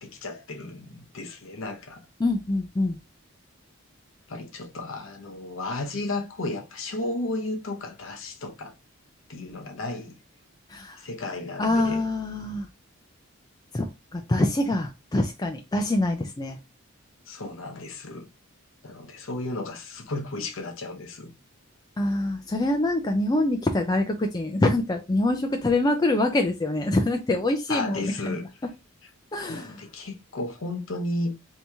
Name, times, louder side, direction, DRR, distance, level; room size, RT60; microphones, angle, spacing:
voice 1, 0.0-2.0 4.3-8.7 9.3-10.2 11.0-12.0 17.3-18.3 18.8-21.3 27.7-28.4 29.5-31.4, left 2 dB, 65° left, 0.8 m, -33 dB
voice 2, 2.2-3.0 10.7-11.0 11.6-12.7 13.7-13.9 14.1-16.6 22.0-28.3 29.3-29.8, left 2 dB, 20° left, 0.3 m, -25 dB
2.9 x 2.7 x 3.4 m
head